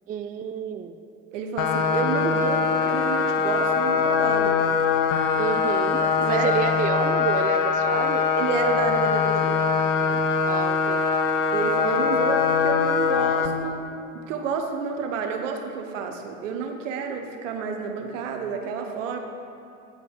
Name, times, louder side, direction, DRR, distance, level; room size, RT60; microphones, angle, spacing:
voice 1, 0.1-1.0 5.4-8.3 10.0-11.1, right 8 dB, 25° right, 9 dB, 0.3 m, -30 dB
voice 2, 1.3-4.6 6.0-6.5 8.4-9.7 11.5-13.9 14.1-19.2, right 6 dB, 80° right, 4 dB, 0.9 m, -30 dB
sound 1, 1.6-13.5, left 6 dB, 55° left, 0.7 m, -22 dB
8.9 x 5.2 x 4.5 m, 2.6 s
hypercardioid pair, 75°, 37 cm